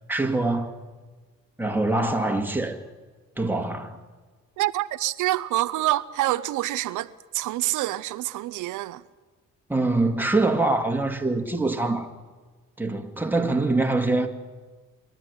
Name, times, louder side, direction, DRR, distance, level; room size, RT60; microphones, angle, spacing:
voice 1, 0.1-0.8 1.6-2.8 3.4-4.0 9.7-12.1 12.8-14.3, right 2 dB, 5° right, 2.2 m, -24 dB
voice 2, 4.6-9.0, right 16 dB, 85° right, 0.7 m, -26 dB
25.5 x 12.0 x 9.6 m
cardioid pair, 90°, 30 cm